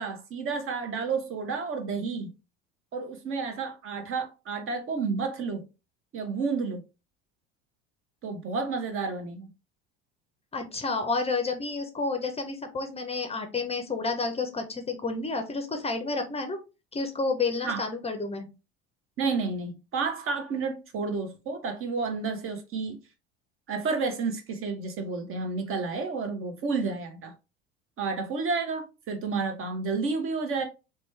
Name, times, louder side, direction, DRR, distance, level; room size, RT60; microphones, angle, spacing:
voice 1, 0.0-2.3 2.9-5.7 6.1-6.8 8.2-9.5 17.6-17.8 19.2-23.0 23.7-27.3 28.0-30.6, right 4 dB, 40° right, 0.9 m, -31 dB
voice 2, 10.5-16.6 16.9-18.5, left 3 dB, 20° left, 0.6 m, -30 dB
3.0 x 2.2 x 3.1 m
hypercardioid pair, 80°, 32 cm